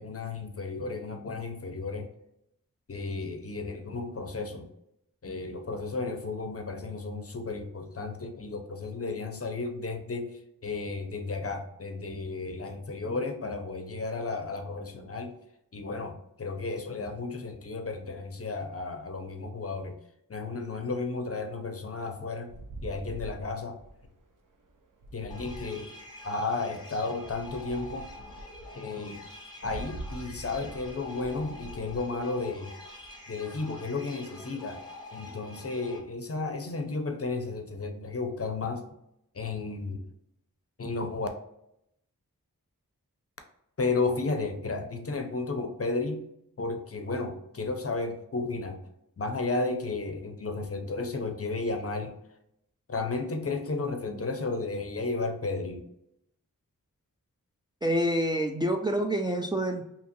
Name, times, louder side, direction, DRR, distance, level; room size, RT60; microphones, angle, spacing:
voice 1, 0.0-2.1 2.9-4.7 5.2-15.3 15.7-20.0 20.3-22.5 22.8-23.8 25.1-25.9 26.2-28.1 28.8-29.2 29.6-32.7 33.3-34.8 35.1-38.8 39.3-40.0 40.8-41.3 43.8-46.2 46.6-48.8 49.2-52.2 52.9-55.8, left 3 dB, 40° left, 5 dB, 0.6 m, -33 dB
sound 1, 22.5-26.5 27.2-33.5, right 2 dB, 65° right, 0.5 m, -45 dB
sound 2, 25.3-36.0, left 2 dB, 10° left, 1.1 m, -46 dB
voice 2, 57.8-59.8, equal, 15° right, 3 dB, 0.3 m, -27 dB
2.9 x 2.4 x 2.6 m, 0.78 s
cardioid pair, 40°, 35 cm